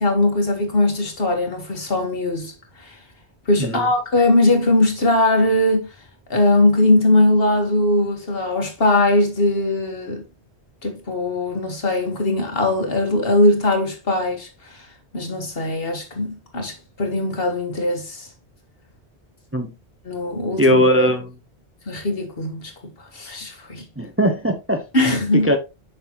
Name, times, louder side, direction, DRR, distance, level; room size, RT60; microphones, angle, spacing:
voice 1, 0.0-2.5 2.8-3.0 3.5-5.9 6.3-10.2 10.8-14.9 15.1-18.3 20.1-20.8 21.9-22.7 23.0-23.8 24.9-25.5, left 2 dB, 60° left, 1.9 m, -20 dB
voice 2, 20.6-21.3 24.0-24.8 25.4-25.6, equal, 15° right, 0.7 m, -19 dB
7.1 x 5.7 x 2.9 m
omnidirectional pair, 1.1 m